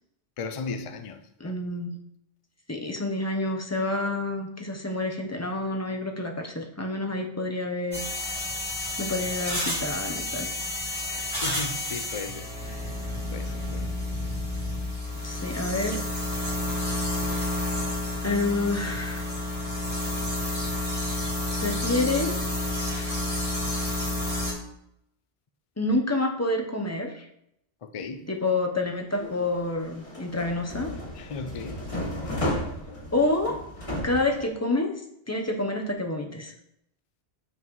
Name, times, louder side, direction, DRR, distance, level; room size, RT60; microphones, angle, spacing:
voice 1, 0.4-1.2 1.4-1.6 11.1-13.0 13.3-13.9 27.8-28.3 31.1-31.8, left 4 dB, 50° left, 0.4 m, -37 dB
voice 2, 1.4-2.0 2.7-8.1 9.0-10.5 15.2-16.0 17.1-17.2 18.2-19.3 21.6-22.4 25.8-27.2 28.3-30.9 33.1-33.6 34.0-34.9 35.3-36.5, left 2 dB, 15° left, 0.8 m, -28 dB
sound 1, 7.9-24.5, left 1 dB, 10° right, 2.6 m, -30 dB
sound 2, 29.1-34.5, left 1 dB, 30° left, 1.5 m, -34 dB
7.1 x 5.8 x 3.1 m
omnidirectional pair, 1.1 m